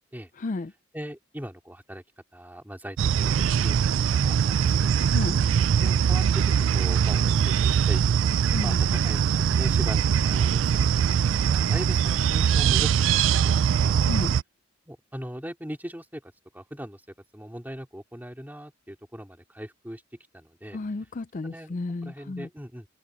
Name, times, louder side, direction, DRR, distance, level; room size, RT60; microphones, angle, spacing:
voice 1, 0.4-0.7 5.1-5.4 8.5-8.8 14.0-14.4 20.7-22.5, left 3 dB, 40° left, 0.4 m, -32 dB
voice 2, 0.9-2.0 2.3-4.9 5.8-13.1 13.4-14.0 14.9-17.0 17.3-20.0 20.3-20.8 21.4-21.8 22.0-22.9, equal, 10° right, 2.9 m, -40 dB
sound 1, 3.0-14.4, right 8 dB, 70° right, 0.3 m, -22 dB
head